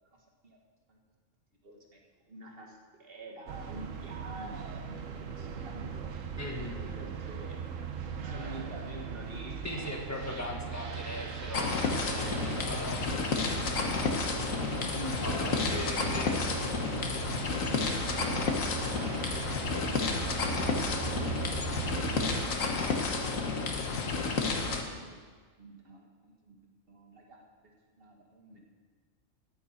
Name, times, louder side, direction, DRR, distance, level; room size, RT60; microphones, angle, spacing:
voice 1, 1.6-2.0 2.3-5.0 5.4-6.1 6.9-7.6 8.2-9.7 10.1-10.2 11.1-11.5 14.8-15.3 19.7-20.4 21.2-22.0 25.0-25.2 25.6-26.6 26.9-27.4 28.0-28.6, right 2 dB, 45° right, 0 dB, 1.7 m, -47 dB
sound 1, 3.5-22.4, right 6 dB, 70° right, 1.2 m, -39 dB
voice 2, 6.4-6.8 9.6-13.0 15.2-16.4, left 1 dB, 10° left, 1 dB, 1.4 m, -39 dB
sound 2, 11.5-24.8, left 4 dB, 75° left, 1.5 m, -31 dB
14.0 x 9.5 x 4.4 m, 1.5 s
omnidirectional pair, 1.4 m